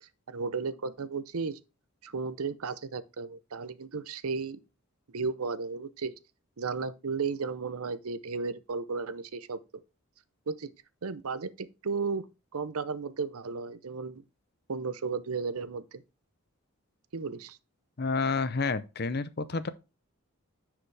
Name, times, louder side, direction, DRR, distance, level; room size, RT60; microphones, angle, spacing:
voice 1, 0.0-1.6 2.0-4.6 5.1-6.1 6.6-9.6 10.5-10.7 11.0-12.3 12.5-14.2 14.7-16.0 17.1-17.6, right 4 dB, 85° right, 0.7 m, -34 dB
voice 2, 18.0-19.7, left 4 dB, 45° left, 0.6 m, -29 dB
9.8 x 4.9 x 3.3 m
head